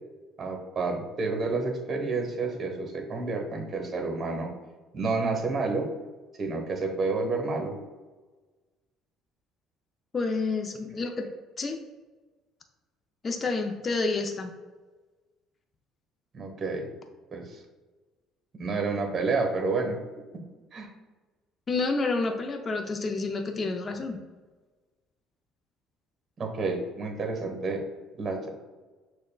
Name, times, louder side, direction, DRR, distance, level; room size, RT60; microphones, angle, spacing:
voice 1, 0.4-4.5 4.9-5.9 6.4-7.8 16.3-16.9 17.3-17.6 18.5-20.0 20.7-20.9 26.4-27.8 28.1-28.5, right 3 dB, 45° right, 3 dB, 0.9 m, -29 dB
voice 2, 10.1-11.3 11.6-11.8 13.2-14.5 21.7-24.2, left 3 dB, 35° left, 4 dB, 0.4 m, -29 dB
6.4 x 2.2 x 2.2 m, 1.3 s
supercardioid pair, 75°, 0 cm